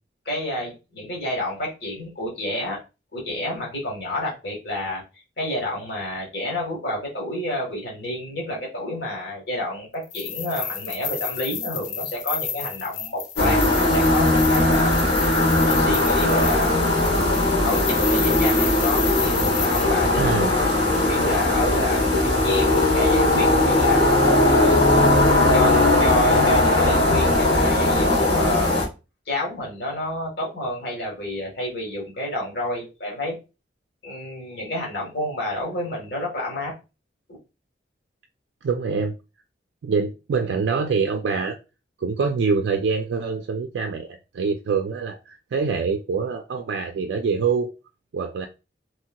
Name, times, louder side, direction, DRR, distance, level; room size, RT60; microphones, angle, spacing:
voice 1, 0.2-2.8 3.1-5.0 5.4-15.0 15.6-16.8 17.0-17.3 17.6-20.5 20.8-24.0 24.4-28.7 29.3-33.4 34.0-36.7, left 1 dB, 65° left, 1.3 m, -29 dB
sound 1, 10.0-19.8, left 7 dB, 40° left, 0.4 m, -31 dB
sound 2, 13.4-28.9, left 2 dB, 85° left, 1.6 m, -19 dB
voice 2, 20.2-20.5 38.6-39.2 39.8-41.6 42.0-47.7 48.1-48.5, right 5 dB, 75° right, 0.3 m, -25 dB
3.1 x 2.8 x 2.2 m
head